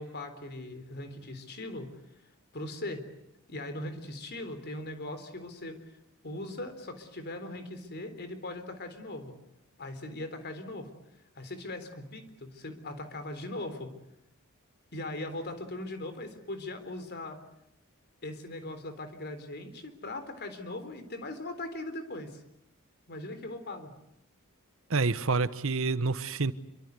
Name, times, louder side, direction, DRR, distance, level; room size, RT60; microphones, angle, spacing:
voice 1, 0.0-1.9 2.5-3.0 3.5-5.8 6.2-9.4 9.8-10.9 11.3-13.9 14.9-17.4 18.2-22.4 23.1-23.9, left 1 dB, 50° left, 3.8 m, -39 dB
voice 2, 24.9-26.5, right 3 dB, 70° right, 1.1 m, -28 dB
26.5 x 24.5 x 8.3 m
head